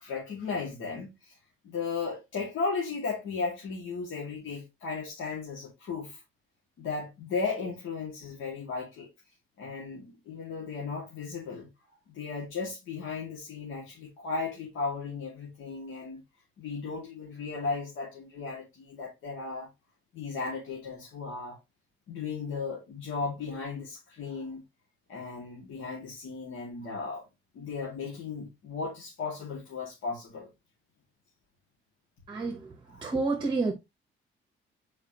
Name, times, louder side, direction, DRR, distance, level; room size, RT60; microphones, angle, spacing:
voice 1, 0.0-1.3 1.6-6.2 6.8-9.1 9.6-11.7 12.1-16.2 16.6-19.7 20.1-21.6 22.1-24.6 25.1-27.2 27.5-30.5 32.9-33.1, left 4 dB, 70° left, 2.2 m, -35 dB
voice 2, 32.3-32.7 33.0-33.7, right 3 dB, 20° right, 1.0 m, -29 dB
7.1 x 4.7 x 2.9 m
cardioid pair, 165°, 21 cm